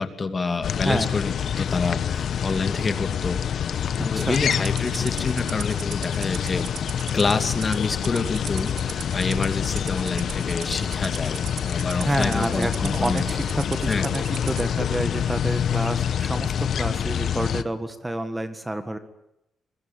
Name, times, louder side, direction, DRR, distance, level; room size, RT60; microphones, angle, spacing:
voice 1, 0.0-6.7 7.1-13.2 13.9-14.0, left 4 dB, 30° left, 7 dB, 2.6 m, -27 dB
sound 1, 0.6-17.6, left 8 dB, 65° left, 1.1 m, -26 dB
voice 2, 4.0-4.4 11.9-16.5 16.8-19.0, right 1 dB, 10° right, 9 dB, 1.8 m, -28 dB
Rattle (instrument), 4.2-14.7, right 9 dB, 80° right, 1.8 m, -39 dB
25.0 x 21.5 x 9.2 m, 0.85 s
cardioid pair, 110°, 0 cm